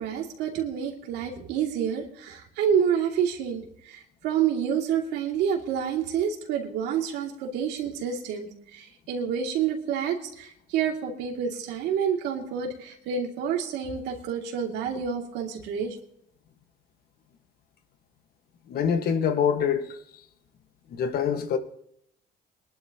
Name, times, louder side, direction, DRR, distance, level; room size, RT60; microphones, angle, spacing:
voice 1, 0.0-16.0, right 8 dB, 85° right, 2.5 m, -28 dB
voice 2, 18.7-20.0 20.9-21.6, left 7 dB, 65° left, 1.5 m, -25 dB
22.0 x 11.5 x 2.9 m
cardioid pair, 110°, 17 cm